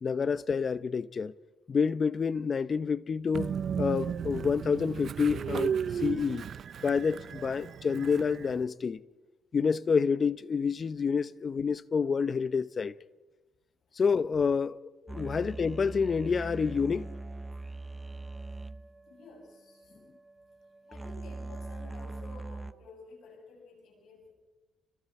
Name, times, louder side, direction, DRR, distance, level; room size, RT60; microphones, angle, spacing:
voice 1, 0.0-1.3 1.7-6.5 6.8-9.0 9.5-12.9 14.0-17.1, left 5 dB, 40° left, 0.8 m, -28 dB
Train, 3.3-8.6, right 7 dB, 60° right, 0.7 m, -34 dB
sound 1, 15.1-22.7, right 2 dB, 15° right, 0.8 m, -42 dB
voice 2, 19.1-20.0 20.9-24.3, left 3 dB, 75° left, 7.1 m, -52 dB
30.0 x 26.5 x 4.4 m
cardioid pair, 90°, 0 cm